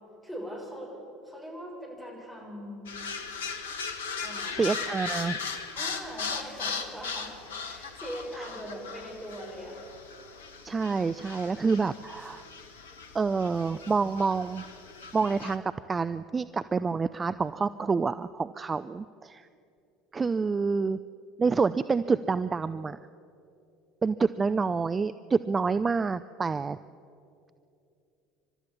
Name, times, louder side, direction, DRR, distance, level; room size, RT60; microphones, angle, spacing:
voice 1, 0.2-0.9 1.2-2.9 4.2-4.6 5.7-7.3 7.6-9.8, equal, 5° left, -1 dB, 6.6 m, -41 dB
sound 1, 2.9-15.6, left 5 dB, 70° left, 1.1 m, -38 dB
voice 2, 4.6-5.4 6.2-6.3 8.4-8.5 10.6-12.5 13.1-14.6 15.1-19.5 20.1-21.0 21.4-23.0 24.0-26.8, right 4 dB, 20° right, 13 dB, 0.4 m, -28 dB
29.0 x 13.0 x 7.1 m, 2.6 s
figure-of-eight pair, 65°, 0 cm